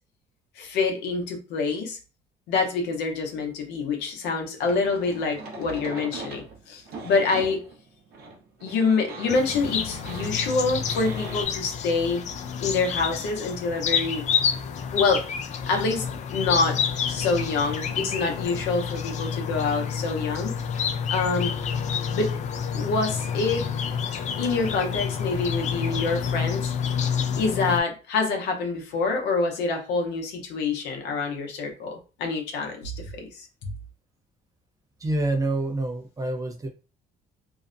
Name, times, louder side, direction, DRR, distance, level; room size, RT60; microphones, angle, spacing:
voice 1, 0.6-2.0 2.5-7.6 8.6-12.3 12.6-14.3 14.9-15.2 15.7-16.8 17.1-20.5 21.1-21.5 22.1-22.3 22.7-23.7 24.4-26.7 27.3-33.5, left 4 dB, 85° left, 2 dB, 0.7 m, -26 dB
sound 1, 4.6-11.5, right 3 dB, 65° right, 0.7 m, -40 dB
sound 2, 9.3-27.8, left 7 dB, 45° left, 0.4 m, -29 dB
voice 2, 35.0-36.7, right 2 dB, 20° right, 4 dB, 0.6 m, -27 dB
2.6 x 2.1 x 2.5 m, 0.33 s
cardioid pair, 110°, 17 cm